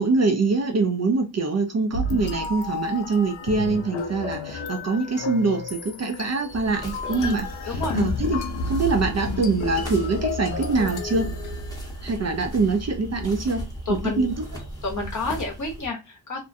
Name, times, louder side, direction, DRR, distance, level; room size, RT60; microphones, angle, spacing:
voice 1, 0.0-11.3 12.0-13.6 13.9-14.4, right 3 dB, 40° right, 0.4 m, -24 dB
sound 1, 1.9-12.2, left 3 dB, 85° left, 0.6 m, -32 dB
sound 2, 3.3-10.5, right 1 dB, 85° right, 0.6 m, -47 dB
sound 3, 6.5-15.9, right 1 dB, 10° left, 0.8 m, -35 dB
voice 2, 7.7-8.0 13.9-14.3 14.8-16.4, left 3 dB, 40° left, 0.8 m, -30 dB
2.5 x 2.1 x 2.5 m
cardioid pair, 105°, 45 cm